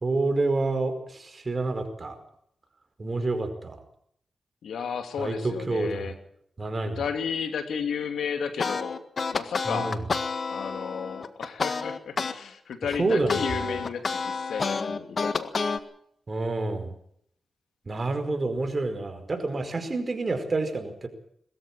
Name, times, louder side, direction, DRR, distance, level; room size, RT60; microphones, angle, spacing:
voice 1, 0.0-2.1 3.0-3.7 5.2-6.1 6.6-7.0 9.6-10.0 13.0-13.7 16.3-16.9 17.9-21.1, right 3 dB, 45° right, 7 dB, 4.9 m, -28 dB
voice 2, 4.6-6.1 7.0-9.0 9.3-10.0 10.5-15.6, left 6 dB, 85° left, 8 dB, 2.5 m, -33 dB
sound 1, 8.6-12.4 12.7-15.8, left 4 dB, 55° left, 1.7 m, -29 dB
21.5 x 14.0 x 8.9 m, 0.71 s
cardioid pair, 55°, 0 cm